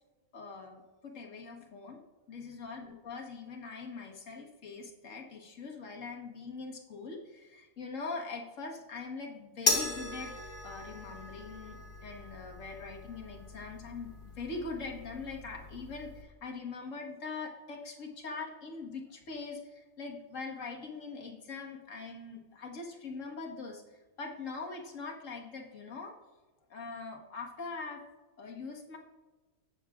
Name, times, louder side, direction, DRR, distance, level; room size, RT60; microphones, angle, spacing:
voice 1, 0.3-10.3 10.6-23.8 24.2-26.1 26.7-28.0 28.4-29.0, left 4 dB, 60° left, 1 dB, 1.7 m, -42 dB
sound 1, 9.7-16.2, left 2 dB, 35° left, 2.0 m, -37 dB
18.5 x 7.2 x 2.4 m, 1.2 s
omnidirectional pair, 1.5 m